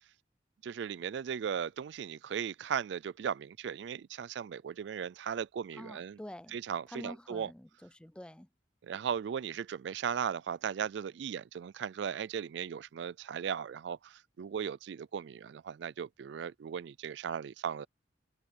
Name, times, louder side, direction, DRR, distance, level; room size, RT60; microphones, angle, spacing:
voice 1, 0.6-6.2 6.5-7.5 8.8-17.9, right 7 dB, 75° right, 0.3 m, -37 dB
voice 2, 5.8-6.6 6.9-8.5, left 1 dB, 5° left, 0.4 m, -47 dB
head